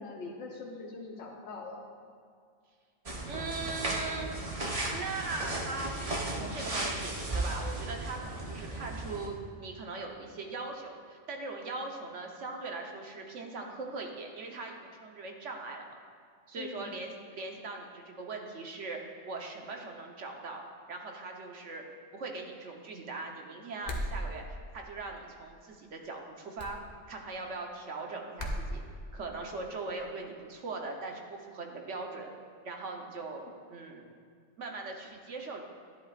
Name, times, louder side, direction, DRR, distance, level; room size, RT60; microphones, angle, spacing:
voice 1, 0.0-1.8 16.5-16.9, left 3 dB, 65° left, -1 dB, 1.4 m, -42 dB
sound 1, 3.1-9.3, right 1 dB, 30° right, 0.9 m, -35 dB
voice 2, 3.3-4.3 4.9-15.9 16.5-19.0 19.3-21.8 22.1-26.8 27.1-28.8 29.1-32.3 32.6-33.4 33.7-34.1 34.6-35.6, right 3 dB, 60° right, 2 dB, 1.3 m, -40 dB
sound 2, 23.8-24.2 26.6-26.8 28.4-28.6, equal, 40° left, 0.8 m, -34 dB
11.0 x 10.5 x 2.5 m, 2.2 s
omnidirectional pair, 1.4 m